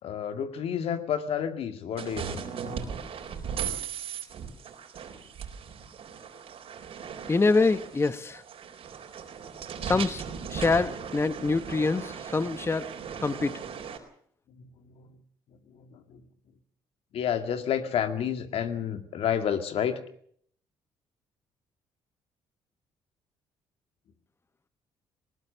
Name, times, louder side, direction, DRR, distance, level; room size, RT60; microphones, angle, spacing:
voice 1, 0.0-2.4 14.6-15.1 15.9-16.2 17.1-20.0, left 8 dB, 70° left, 8 dB, 2.1 m, -30 dB
sound 1, 2.0-14.0, right 7 dB, 65° right, 4.1 m, -38 dB
voice 2, 7.3-8.4 9.8-10.2 10.5-12.9 13.2-13.6, left 3 dB, 25° left, 13 dB, 1.0 m, -25 dB
20.0 x 19.0 x 6.8 m, 0.62 s
supercardioid pair, 70°, 11 cm